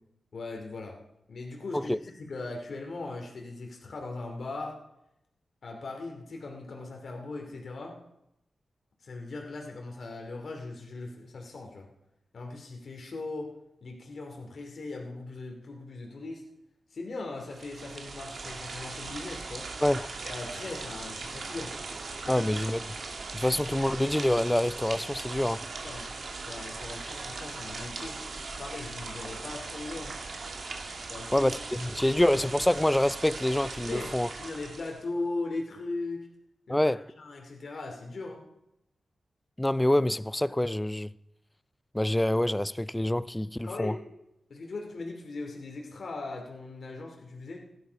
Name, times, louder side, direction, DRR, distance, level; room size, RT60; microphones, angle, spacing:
voice 1, 0.3-1.0 1.3-4.8 5.6-8.0 9.0-11.9 12.3-13.5 13.8-16.4 16.9-19.7 20.2-21.8 22.2-22.5 23.5-23.6 25.8-26.1 26.5-28.2 28.6-30.2 31.1-31.5 32.0-32.2 33.8-34.1 34.4-36.3 36.7-38.4 43.6-44.0 44.5-47.7, left 3 dB, 65° left, 2.7 m, -39 dB
sound 1, 17.4-35.0, right 3 dB, 65° right, 1.9 m, -39 dB
voice 2, 22.3-22.8 23.3-25.6 31.3-34.3 36.7-37.0 39.6-41.1 41.9-43.9, left 1 dB, 10° left, 0.4 m, -26 dB
16.5 x 11.5 x 4.7 m
cardioid pair, 75°, 0 cm